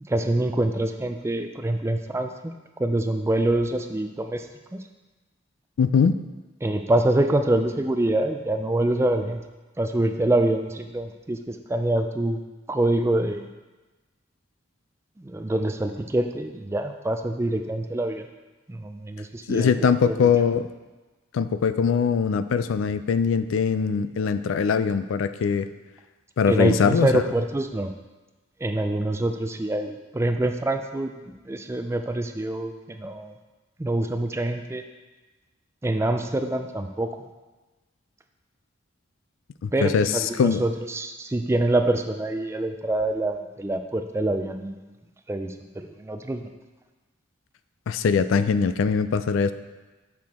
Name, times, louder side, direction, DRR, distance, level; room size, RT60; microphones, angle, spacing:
voice 1, 0.1-2.5 2.8-4.5 4.7-4.8 6.6-9.4 9.8-12.4 12.7-13.5 15.2-18.3 18.7-20.3 26.5-27.9 28.6-33.3 33.8-34.8 35.8-37.1 39.7-44.8 45.3-46.5, right 1 dB, 15° right, 6 dB, 0.3 m, -25 dB
voice 2, 5.8-6.2 19.5-20.7 21.3-25.7 26.4-27.2 39.6-40.6 47.9-49.5, left 6 dB, 80° left, 12 dB, 0.3 m, -22 dB
6.6 x 6.0 x 3.6 m, 1.2 s
head